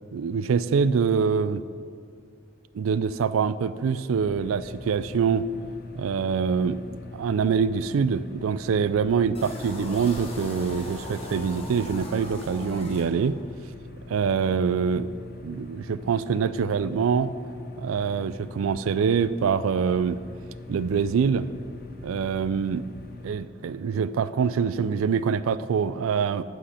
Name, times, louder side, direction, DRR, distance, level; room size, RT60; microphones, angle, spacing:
voice 1, 0.1-1.6 2.7-5.5 5.9-6.8 7.1-13.4 14.1-15.1 15.4-17.3 17.8-20.2 20.7-21.5 22.0-22.9 23.2-26.4, right 6 dB, 80° right, 15 dB, 0.3 m, -25 dB
sound 1, 4.1-23.4, left 2 dB, 45° left, 0.7 m, -43 dB
sound 2, 9.3-13.6, left 1 dB, 30° left, 1.3 m, -39 dB
8.7 x 7.6 x 4.9 m, 2.3 s
head